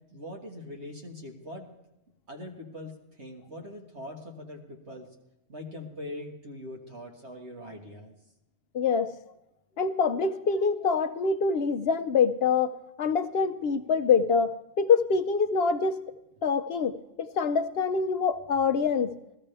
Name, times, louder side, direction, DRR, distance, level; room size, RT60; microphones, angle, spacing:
voice 1, 0.1-1.7 2.3-5.1 5.5-8.1, left 1 dB, 65° right, 1 dB, 1.9 m, -42 dB
voice 2, 8.7-9.1 9.8-12.7 13.0-16.1 16.4-19.1, left 5 dB, 60° left, 10 dB, 0.8 m, -25 dB
17.0 x 14.0 x 3.3 m, 0.90 s
omnidirectional pair, 1.3 m